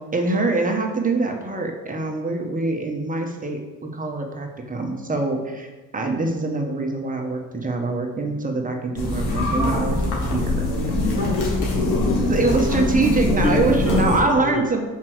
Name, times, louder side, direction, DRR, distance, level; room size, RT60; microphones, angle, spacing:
voice 1, 0.1-5.7 5.9-10.0 10.3-10.7 12.3-14.8, right 3 dB, 20° right, 2 dB, 1.3 m, -24 dB
sound 1, 9.0-14.2, left 1 dB, 75° left, 2.2 m, -22 dB
voice 2, 11.2-12.3 13.3-14.7, left 6 dB, 30° left, 4 dB, 0.6 m, -30 dB
5.9 x 4.7 x 6.2 m, 1.2 s
cardioid pair, 95°, 41 cm